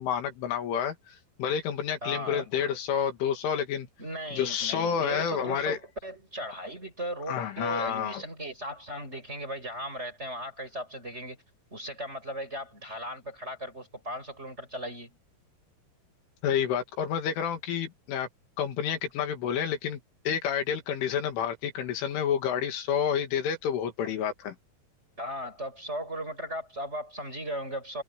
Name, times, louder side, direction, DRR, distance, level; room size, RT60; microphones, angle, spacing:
voice 1, 0.0-3.9 4.4-5.8 7.3-8.2 16.4-18.3 18.6-20.0 20.3-24.6, left 8 dB, 80° left, 5.0 m, -29 dB
voice 2, 2.0-2.5 4.0-11.4 11.7-15.2 24.0-24.2 25.2-28.0, right 1 dB, 15° right, 5.9 m, -37 dB
omnidirectional pair, 5.5 m